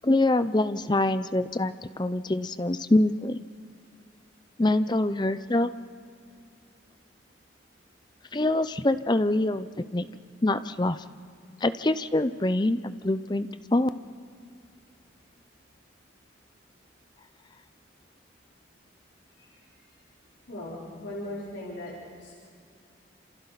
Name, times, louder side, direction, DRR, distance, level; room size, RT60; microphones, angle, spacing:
voice 1, 0.0-3.4 4.6-5.7 8.3-9.7 9.9-10.1 10.4-11.0 11.6-13.9, left 2 dB, 20° left, 12 dB, 0.6 m, -25 dB
voice 2, 20.5-21.9 22.2-22.4, left 1 dB, 70° left, -6 dB, 3.9 m, -38 dB
29.0 x 27.0 x 4.1 m, 2.3 s
head